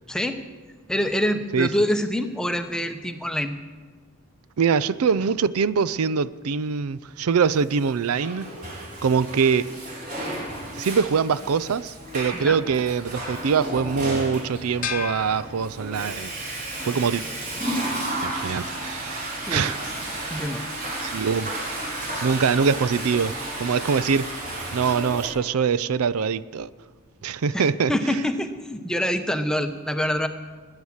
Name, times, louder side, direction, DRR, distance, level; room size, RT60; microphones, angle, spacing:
voice 1, 0.1-0.4 0.9-3.5 12.3-12.6 19.5-19.7 20.3-20.7 27.5-30.3, equal, 5° left, 0.8 m, -26 dB
voice 2, 4.6-8.5 9.0-9.7 10.8-16.3 16.9-17.2 18.2-19.8 21.0-21.5 22.2-23.3 23.6-24.4 24.7-26.7 27.2-27.9, right 6 dB, 85° right, 0.5 m, -23 dB
Water / Toilet flush, 7.8-25.3, right 1 dB, 35° right, 4.2 m, -33 dB
sound 1, 14.8-16.3, left 7 dB, 40° left, 1.0 m, -34 dB
20.0 x 9.8 x 7.2 m
head